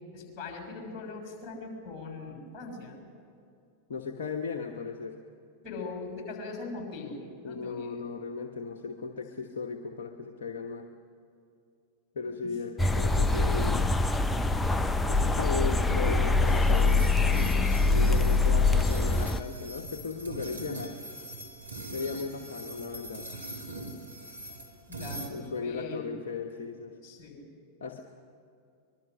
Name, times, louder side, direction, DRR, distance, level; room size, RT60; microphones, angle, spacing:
voice 1, 0.1-3.0 5.6-8.0 18.3-18.4 24.9-26.1 27.0-27.5, left 3 dB, 30° left, 2 dB, 6.4 m, -41 dB
voice 2, 3.9-5.2 7.4-10.9 12.1-13.9 15.1-17.1 17.9-21.0 21.9-23.3 25.3-27.0 27.8-28.0, left 4 dB, 60° left, 3 dB, 1.2 m, -36 dB
sound 1, 12.8-19.4, left 3 dB, 10° left, 0.7 m, -24 dB
sound 2, 16.5-25.3, right 2 dB, 90° right, 3.1 m, -41 dB
24.5 x 22.5 x 6.4 m, 2.5 s
figure-of-eight pair, 90°, 0 cm